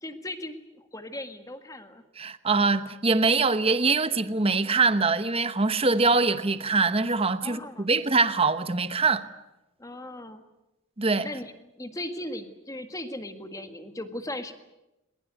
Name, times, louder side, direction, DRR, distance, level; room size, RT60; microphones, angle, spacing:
voice 1, 0.0-2.0 7.4-7.9 9.8-10.4 11.2-11.5 11.8-14.5, left 1 dB, 15° left, 1.8 m, -37 dB
voice 2, 2.2-9.3 11.0-11.3, right 4 dB, 30° right, 1.0 m, -23 dB
21.5 x 21.0 x 9.4 m
head